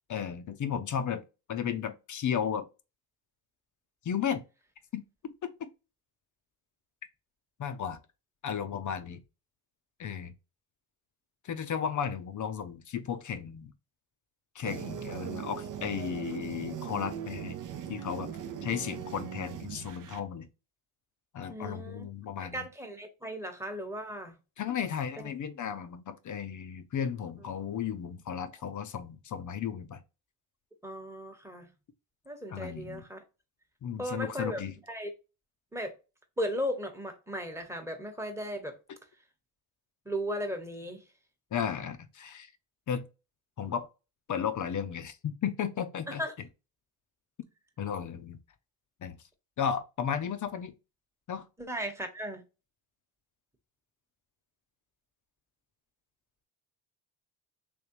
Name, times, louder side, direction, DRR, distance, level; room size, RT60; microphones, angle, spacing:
voice 1, 0.1-1.2 1.5-2.7 4.0-4.4 4.9-5.7 7.6-8.0 8.4-9.2 10.0-10.3 11.4-13.7 14.5-17.6 17.9-18.3 18.6-20.5 21.3-22.7 24.6-30.0 32.5-33.0 33.8-34.8 41.5-42.5 42.9-43.1 43.6-43.9 44.3-46.2 47.8-48.4 49.0-49.2 49.6-50.7 51.3-51.5, left 8 dB, 40° left, 0.6 m, -34 dB
sound 1, 14.6-20.2, right 9 dB, 45° right, 0.6 m, -39 dB
voice 2, 21.5-22.1 22.5-24.4 30.8-31.7 32.3-33.2 34.0-34.6 34.9-35.1 35.7-35.9 36.4-38.8 40.1-41.0 46.1-46.3 51.6-52.4, equal, 5° right, 1.1 m, -36 dB
3.4 x 3.1 x 3.0 m
supercardioid pair, 65°, 46 cm